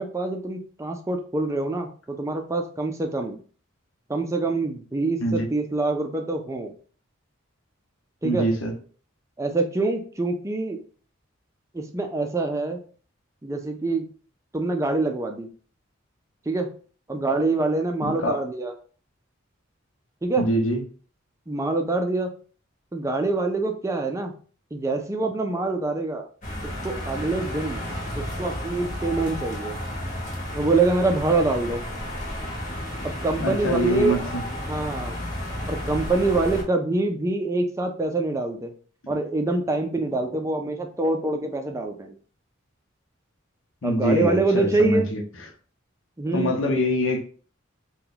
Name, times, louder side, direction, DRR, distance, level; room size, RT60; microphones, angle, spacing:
voice 1, 0.0-3.4 4.1-6.7 8.2-8.5 9.4-10.8 11.7-12.8 13.4-14.1 14.5-15.5 16.5-16.7 17.1-18.7 20.2-20.5 21.5-22.3 22.9-24.3 24.7-26.3 26.8-27.8 28.2-29.7 30.5-31.8 33.0-34.2 34.6-35.2 35.7-38.7 39.1-42.1 43.8-45.1 46.2-46.8, right 2 dB, 15° right, 0.4 m, -25 dB
voice 2, 8.2-8.7 18.0-18.4 20.4-20.8 33.4-34.4 43.8-45.2 46.3-47.2, equal, 75° left, 0.8 m, -24 dB
sound 1, 26.4-36.6, left 1 dB, 40° left, 1.0 m, -32 dB
2.9 x 2.2 x 3.8 m
head